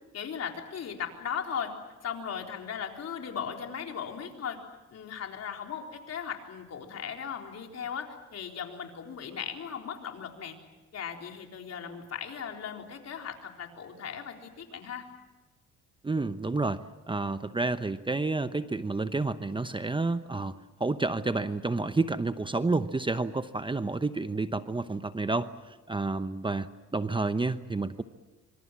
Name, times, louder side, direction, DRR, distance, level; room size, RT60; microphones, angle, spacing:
voice 1, 0.1-1.7 2.0-4.6 4.9-10.6 10.9-15.1, left 7 dB, 55° left, 2 dB, 4.1 m, -37 dB
voice 2, 16.0-20.5 20.8-28.0, right 3 dB, 15° right, 11 dB, 0.9 m, -30 dB
25.5 x 25.0 x 7.6 m, 1.2 s
cardioid pair, 90°, 30 cm